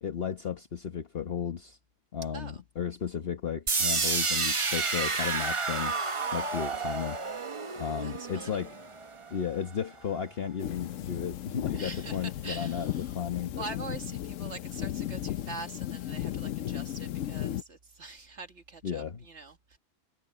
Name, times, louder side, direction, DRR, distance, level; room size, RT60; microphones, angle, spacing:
voice 1, 0.0-1.8 2.1-6.0 6.3-7.2 7.7-8.7 9.3-13.6 18.8-19.2, left 8 dB, 50° left, 1.3 m, -34 dB
sound 1, 3.7-9.6, right 4 dB, 30° right, 0.8 m, -30 dB
voice 2, 8.0-8.6 11.7-13.2 13.6-19.8, right 3 dB, 65° right, 1.7 m, -44 dB
sound 2, 10.6-17.6, left 12 dB, 90° left, 1.0 m, -35 dB
omnidirectional pair, 1.3 m